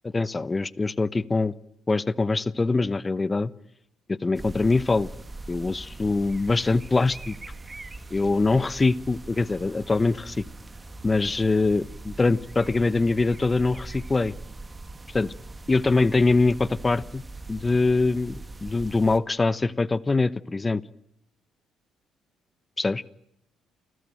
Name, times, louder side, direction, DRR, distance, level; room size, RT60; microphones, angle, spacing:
voice 1, 0.0-1.5 1.9-3.5 4.1-5.1 5.5-7.4 8.1-10.4 11.0-11.8 12.2-14.3 15.1-15.3 15.7-17.2 17.5-20.8 22.8-23.0, left 3 dB, 25° left, 19 dB, 1.0 m, -23 dB
sound 1, 4.3-19.2, right 2 dB, 25° right, 2.4 m, -41 dB
29.0 x 20.5 x 9.1 m, 0.78 s
hypercardioid pair, 55°, 0 cm